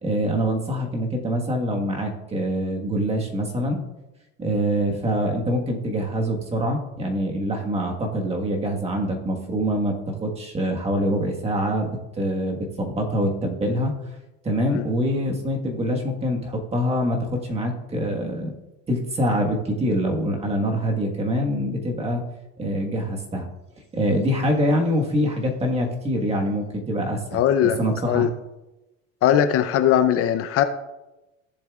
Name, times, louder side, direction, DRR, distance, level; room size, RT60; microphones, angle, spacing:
voice 1, 0.0-3.8 4.4-11.9 12.2-13.9 14.4-18.5 18.9-22.2 22.6-23.5 23.9-28.3, equal, 20° right, 1 dB, 1.5 m, -25 dB
voice 2, 27.3-27.8 28.1-28.3 29.2-30.6, left 10 dB, 50° left, 9 dB, 0.6 m, -19 dB
16.0 x 7.3 x 2.4 m, 1.0 s
cardioid pair, 120°, 29 cm